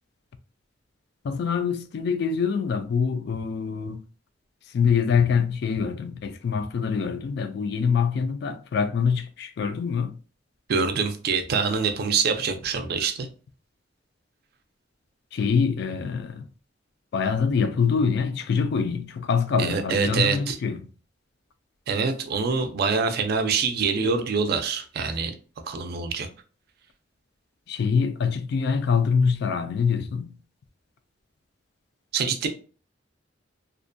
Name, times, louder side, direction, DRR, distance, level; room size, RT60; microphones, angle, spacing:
voice 1, 1.2-4.0 4.7-10.2 15.3-16.5 17.1-20.8 27.7-30.4, left 6 dB, 60° left, 0.3 m, -25 dB
voice 2, 10.7-13.3 19.6-20.6 21.9-25.3 25.7-26.3 32.1-32.5, right 5 dB, 55° right, 0.4 m, -25 dB
2.4 x 2.1 x 2.5 m
head